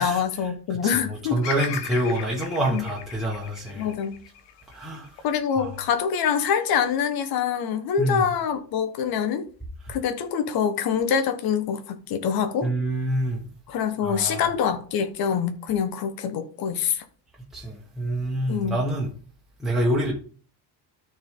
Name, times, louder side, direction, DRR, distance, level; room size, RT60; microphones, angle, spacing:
voice 1, 0.0-1.4 2.0-2.1 2.7-2.8 3.8-4.2 5.2-9.4 9.9-12.7 13.7-17.0 18.5-18.8, left 7 dB, 55° left, 1.2 m, -25 dB
voice 2, 0.7-3.9 4.7-5.1 5.6-5.7 8.0-8.2 12.6-13.4 14.0-14.4 17.5-19.1 19.6-20.1, right 1 dB, ahead, 1.4 m, -26 dB
Bird vocalization bird call bird song, 1.4-5.6 6.2-6.9, left 9 dB, 75° left, 1.1 m, -37 dB
13.0 x 4.5 x 3.8 m
cardioid pair, 175°, 43 cm